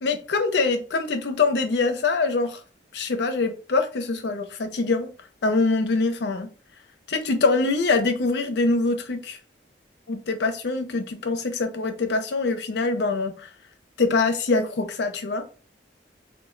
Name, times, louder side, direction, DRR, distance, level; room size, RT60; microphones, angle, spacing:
voice 1, 0.0-2.6 2.9-5.1 5.4-6.5 7.1-9.4 10.1-13.5 14.0-15.4, left 3 dB, 70° left, 0.5 m, -24 dB
2.2 x 2.0 x 3.7 m
head